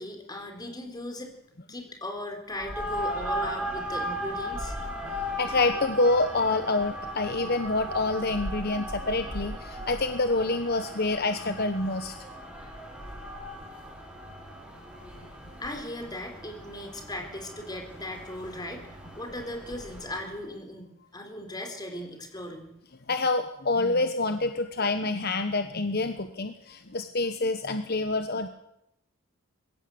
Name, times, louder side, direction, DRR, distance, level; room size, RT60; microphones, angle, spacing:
voice 1, 0.0-1.3 1.7-4.8 15.6-18.9 19.1-22.7, left 1 dB, 20° left, 4 dB, 4.1 m, -38 dB
sound 1, 2.5-20.4, equal, 5° right, 5.8 m, -37 dB
voice 2, 5.0-12.1 23.1-28.5, left 2 dB, 50° left, 8 dB, 1.2 m, -27 dB
21.0 x 16.5 x 7.9 m, 0.81 s
head